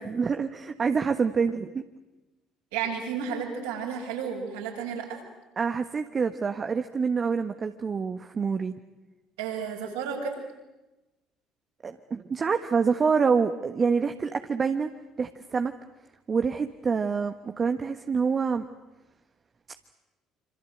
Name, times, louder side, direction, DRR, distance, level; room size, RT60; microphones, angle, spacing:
voice 1, 0.0-1.8 5.6-8.7 11.8-14.9 15.2-15.7 16.3-18.6, right 5 dB, 35° right, 7 dB, 1.4 m, -26 dB
voice 2, 2.7-5.2 9.4-10.3, right 7 dB, 75° right, -1 dB, 7.4 m, -32 dB
27.0 x 26.5 x 8.0 m, 1.1 s
hypercardioid pair, 55°, 0 cm